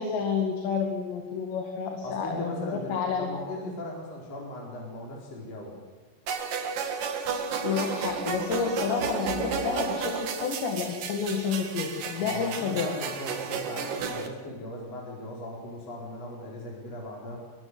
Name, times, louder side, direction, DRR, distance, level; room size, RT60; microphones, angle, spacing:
voice 1, 0.0-3.3 7.6-12.9, left 6 dB, 75° left, 3 dB, 4.3 m, -30 dB
voice 2, 2.0-5.7 12.2-17.4, left 1 dB, 35° left, -2 dB, 5.0 m, -38 dB
sound 1, 6.3-14.3, right 6 dB, 55° right, 3.0 m, -32 dB
23.5 x 21.5 x 8.0 m, 1.4 s
omnidirectional pair, 5.2 m